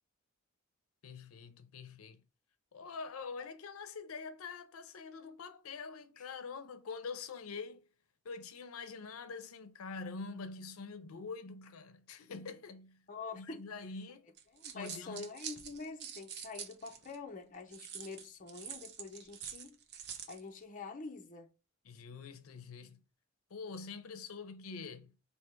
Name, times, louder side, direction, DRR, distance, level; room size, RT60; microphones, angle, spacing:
voice 1, 1.0-2.2 2.7-7.8 8.2-13.0 13.3-14.3 14.7-15.3 21.8-23.0 23.5-25.1, left 4 dB, 85° left, 0.5 m, -45 dB
voice 2, 13.1-13.6 14.5-19.8 20.3-21.5, left 4 dB, 40° left, 0.6 m, -46 dB
sound 1, 14.4-17.2 17.7-20.4, right 8 dB, 50° right, 0.6 m, -46 dB
3.4 x 2.8 x 4.4 m
head